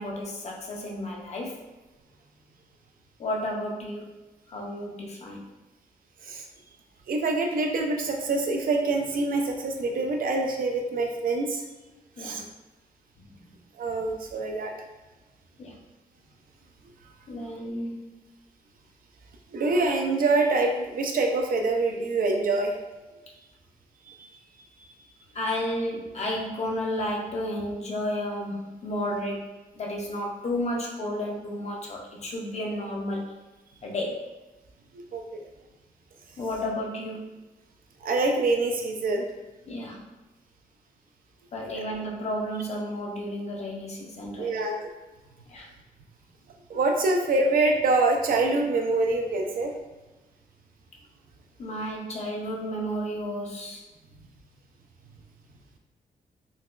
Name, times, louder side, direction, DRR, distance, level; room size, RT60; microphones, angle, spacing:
voice 1, 0.0-1.6 3.2-4.1 4.5-5.4 12.2-12.4 13.4-13.5 15.6-15.8 17.3-18.2 23.2-23.3 25.3-33.3 33.8-34.2 36.4-37.3 39.7-40.0 41.5-44.7 45.5-45.7 51.6-53.8, left 1 dB, 45° left, -1 dB, 0.6 m, -32 dB
voice 2, 7.1-11.6 12.2-12.4 13.8-14.7 19.5-22.7 24.1-24.3 34.9-35.2 38.0-39.2 44.4-44.9 46.7-49.7, right 3 dB, 70° right, 2 dB, 0.5 m, -25 dB
3.9 x 2.2 x 2.4 m, 1.1 s
wide cardioid pair, 150°, 15 cm